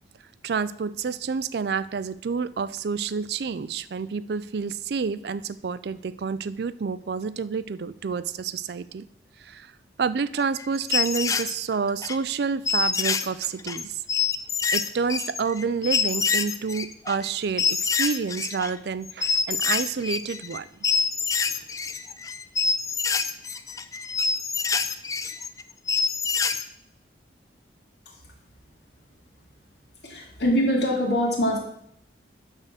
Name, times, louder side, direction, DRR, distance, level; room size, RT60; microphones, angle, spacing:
voice 1, 0.4-9.0 9.4-9.7 10.0-14.0 14.7-20.7, right 5 dB, 60° right, 16 dB, 0.4 m, -29 dB
sound 1, 10.4-12.2 12.7-18.7 19.1-20.6 20.8-26.6, left 5 dB, 20° left, 0.3 m, -26 dB
voice 2, 30.0-31.6, equal, 65° left, -1 dB, 2.2 m, -23 dB
11.0 x 3.7 x 6.4 m, 0.76 s
head